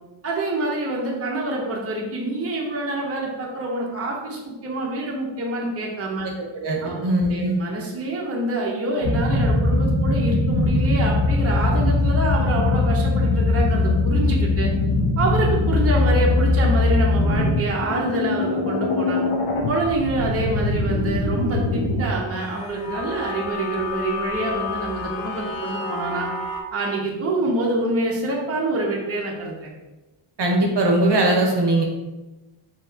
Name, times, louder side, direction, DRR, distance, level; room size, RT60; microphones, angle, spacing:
voice 1, 0.2-6.3 6.8-14.7 15.2-19.2 19.7-26.3 26.7-29.7, right 2 dB, 30° right, -2 dB, 0.7 m, -26 dB
voice 2, 6.6-7.6 30.4-31.8, right 1 dB, 55° right, 0 dB, 0.8 m, -20 dB
sound 1, 9.0-22.0 22.3-26.6, left 3 dB, 75° left, 0.7 m, -22 dB
4.5 x 2.9 x 2.7 m, 1.1 s
wide cardioid pair, 120°, 49 cm